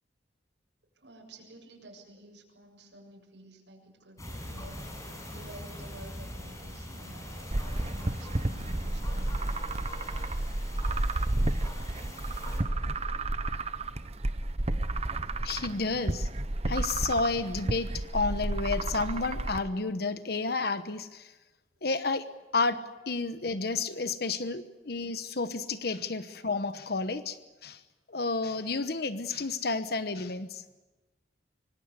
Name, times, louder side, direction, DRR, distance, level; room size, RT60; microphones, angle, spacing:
voice 1, 0.9-9.9, right 1 dB, 85° right, -1 dB, 7.7 m, -52 dB
sound 1, 4.2-12.6, left 1 dB, 20° left, 6.1 m, -42 dB
sound 2, 7.5-19.6, right 2 dB, 35° right, 0.9 m, -31 dB
voice 2, 15.4-16.3 16.6-21.3 21.8-22.3 22.5-27.8 28.1-30.6, left 3 dB, 60° left, 11 dB, 1.1 m, -31 dB
25.0 x 24.5 x 8.1 m, 1.1 s
head